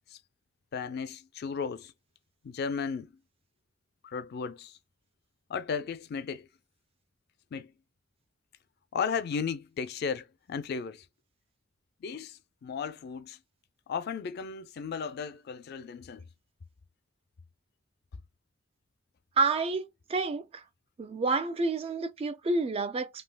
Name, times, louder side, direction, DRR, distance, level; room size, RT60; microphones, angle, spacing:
voice 1, 0.7-1.9 2.4-3.1 4.0-4.8 5.5-6.5 7.5-7.7 8.9-11.1 12.0-13.4 13.9-16.2, left 6 dB, 55° left, 0.4 m, -35 dB
voice 2, 19.4-20.4 21.0-23.1, right 3 dB, 30° right, 0.3 m, -29 dB
3.3 x 2.7 x 2.2 m
head